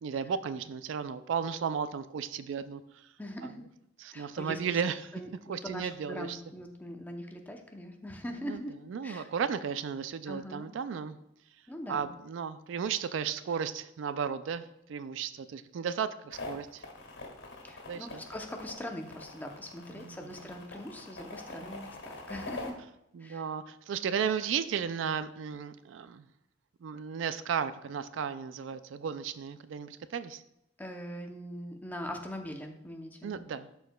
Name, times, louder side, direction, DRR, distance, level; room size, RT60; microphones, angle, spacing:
voice 1, 0.0-3.1 3.4-3.5 4.0-5.1 5.5-6.4 8.5-8.6 8.9-11.2 11.9-16.8 17.9-18.2 20.0-20.2 23.1-26.2 26.8-30.4 33.2-33.7, right 7 dB, 65° right, 13 dB, 0.3 m, -34 dB
voice 2, 3.2-3.6 4.1-4.8 5.1-8.7 9.0-9.3 10.3-10.7 11.7-12.1 17.6-22.8 23.2-23.4 30.8-33.4, equal, 10° left, 3 dB, 0.6 m, -42 dB
sound 1, 16.3-22.7, left 2 dB, 85° left, 1.7 m, -44 dB
12.0 x 4.6 x 2.2 m, 0.84 s
head